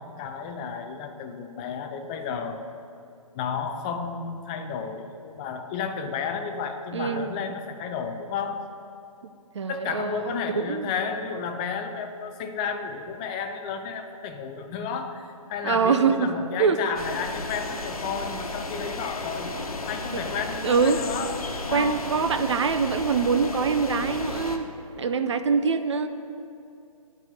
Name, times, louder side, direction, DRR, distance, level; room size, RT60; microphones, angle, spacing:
voice 1, 0.0-2.6 3.3-8.6 9.7-19.5 19.9-22.0, left 6 dB, 10° left, 6 dB, 0.3 m, -32 dB
voice 2, 6.9-7.3 9.6-10.9 15.6-16.3 16.6-16.8 20.6-21.0 21.7-24.7 25.0-26.1, right 5 dB, 50° right, 9 dB, 0.5 m, -24 dB
sound 1, 16.9-24.6, left 2 dB, 70° left, 1.1 m, -34 dB
9.7 x 4.8 x 7.8 m, 2.5 s
figure-of-eight pair, 140°, 19 cm